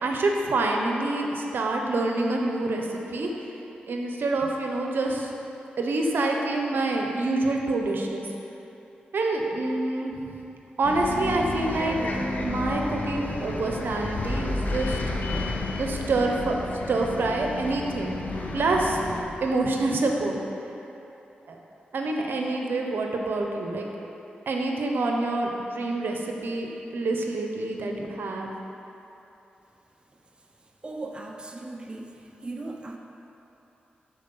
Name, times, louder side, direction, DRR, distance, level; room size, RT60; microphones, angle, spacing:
voice 1, 0.0-3.3 3.9-5.3 5.8-8.3 9.1-10.1 10.8-12.0 12.4-15.0 15.8-16.6 16.9-18.1 18.5-19.0 19.4-20.4 21.5-21.6 21.9-23.9 24.5-28.5, right 2 dB, 75° right, 1 dB, 0.9 m, -26 dB
Bus, 10.8-19.2, left 2 dB, 55° left, 1.1 m, -31 dB
voice 2, 30.8-32.2 32.4-33.0, right 2 dB, 30° right, 1 dB, 0.9 m, -37 dB
12.0 x 4.5 x 5.6 m, 2.9 s
cardioid pair, 65°, 4 cm